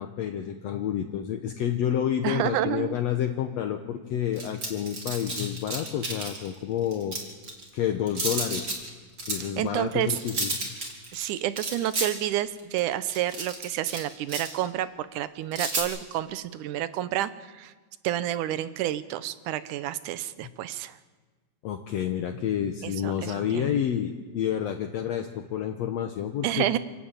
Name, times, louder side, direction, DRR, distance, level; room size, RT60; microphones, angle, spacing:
voice 1, 0.0-7.2 7.7-8.7 9.3-10.5 21.6-26.8, left 9 dB, 65° left, 5 dB, 2.0 m, -29 dB
voice 2, 2.2-3.0 9.4-10.1 11.1-17.7 18.0-21.0 22.8-23.8 26.4-26.8, right 13 dB, 90° right, 14 dB, 2.3 m, -29 dB
sound 1, 4.4-6.5 6.9-7.7 8.1-8.9 9.2-9.4 9.9-14.0 14.3-14.7 15.5-15.8, right 2 dB, 35° right, 3.7 m, -31 dB
27.0 x 12.5 x 8.9 m, 1.3 s
omnidirectional pair, 3.5 m